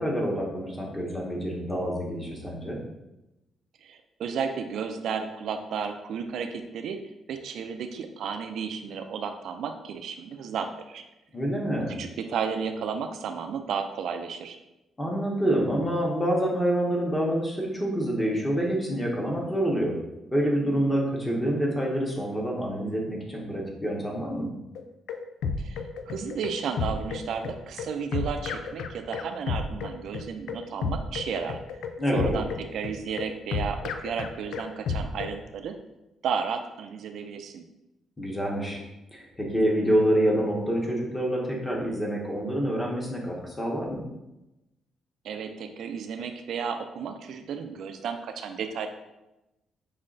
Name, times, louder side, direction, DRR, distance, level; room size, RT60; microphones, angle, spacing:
voice 1, 0.0-2.8 11.3-11.9 15.0-20.0 20.3-24.5 32.0-32.4 38.2-38.8 39.1-44.1, equal, 15° left, -2 dB, 1.2 m, -27 dB
voice 2, 3.8-7.0 7.3-11.0 11.8-14.6 25.6-31.6 32.1-35.7 36.2-37.6 45.2-48.9, right 6 dB, 70° right, 7 dB, 0.4 m, -33 dB
sound 1, 24.7-35.4, left 4 dB, 80° left, 0.3 m, -32 dB
5.5 x 2.1 x 3.9 m, 0.95 s
cardioid pair, 90°, 0 cm